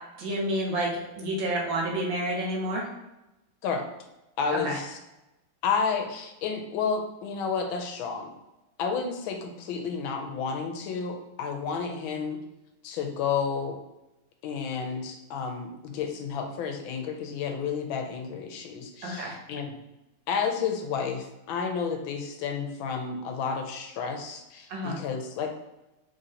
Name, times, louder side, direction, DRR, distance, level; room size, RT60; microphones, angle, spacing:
voice 1, 0.2-2.9 4.5-4.8 19.0-19.4 24.7-25.0, right 1 dB, 70° right, 0 dB, 1.5 m, -29 dB
voice 2, 4.4-5.0 5.6-8.3 8.8-12.4 12.8-13.8 14.4-19.8 20.3-25.5, left 6 dB, 80° left, 4 dB, 1.3 m, -31 dB
3.8 x 3.4 x 2.8 m, 0.95 s
omnidirectional pair, 2.2 m